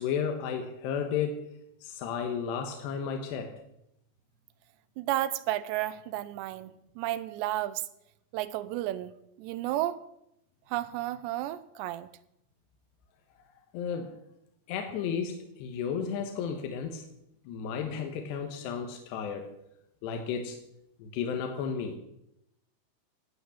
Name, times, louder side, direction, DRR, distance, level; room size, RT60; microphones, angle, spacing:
voice 1, 0.0-1.4 1.8-3.6 13.7-14.1 14.7-17.0 17.5-19.5 20.0-20.6 21.0-22.0, left 7 dB, 80° left, 4 dB, 3.3 m, -33 dB
voice 2, 5.0-7.8 8.3-9.1 9.4-10.0 10.7-12.1, right 14 dB, 90° right, 14 dB, 2.9 m, -32 dB
18.0 x 8.0 x 7.1 m, 0.81 s
omnidirectional pair, 4.9 m